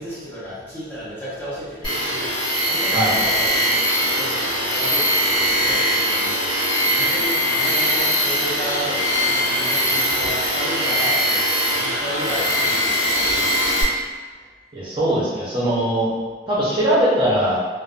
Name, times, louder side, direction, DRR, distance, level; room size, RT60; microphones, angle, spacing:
voice 1, 0.0-2.3 2.6-6.5 6.9-13.6, equal, 10° left, -12 dB, 0.8 m, -33 dB
Tools, 1.8-13.8, equal, 30° left, 1.4 m, -21 dB
voice 2, 14.7-16.1 16.5-17.6, right 1 dB, 30° right, -9 dB, 0.6 m, -20 dB
2.4 x 2.1 x 2.4 m, 1.4 s
head